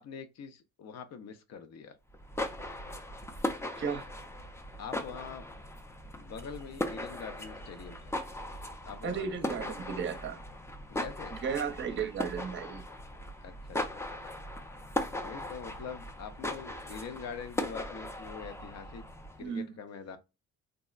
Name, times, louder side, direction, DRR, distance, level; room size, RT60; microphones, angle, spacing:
voice 1, 0.0-2.0 4.8-5.5 6.2-8.1 8.8-9.6 10.9-11.4 13.4-14.0 15.2-19.0 19.4-20.2, left 6 dB, 60° left, 0.6 m, -44 dB
sound 1, 2.1-19.5, left 1 dB, 10° left, 0.4 m, -39 dB
voice 2, 3.8-4.1 9.0-10.4 11.3-12.8 19.4-19.8, right 6 dB, 40° right, 0.6 m, -34 dB
3.5 x 2.0 x 2.3 m
cardioid pair, 90°, 30 cm